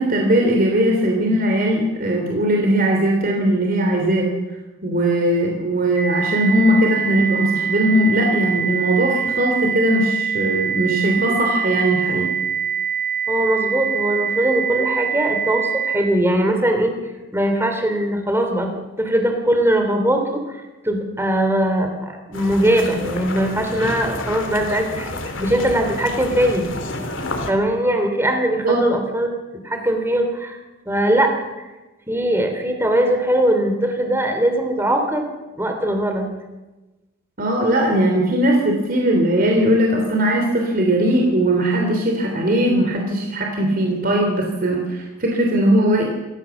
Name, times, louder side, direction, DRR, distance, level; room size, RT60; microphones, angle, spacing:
voice 1, 0.0-4.3 4.8-12.3 28.6-28.8 37.4-46.0, right 1 dB, 45° right, 1 dB, 3.3 m, -19 dB
sound 1, 5.9-15.9, right 7 dB, 85° right, 7.6 m, -24 dB
voice 2, 13.3-16.9 17.3-18.7 19.0-20.6 20.8-26.7 27.5-30.6 30.9-31.3 32.1-35.2 35.5-36.3, right 1 dB, 10° right, 4 dB, 3.0 m, -20 dB
sound 2, 22.3-27.5, left 2 dB, 65° left, 2.8 m, -30 dB
27.0 x 15.0 x 7.1 m, 1.1 s
head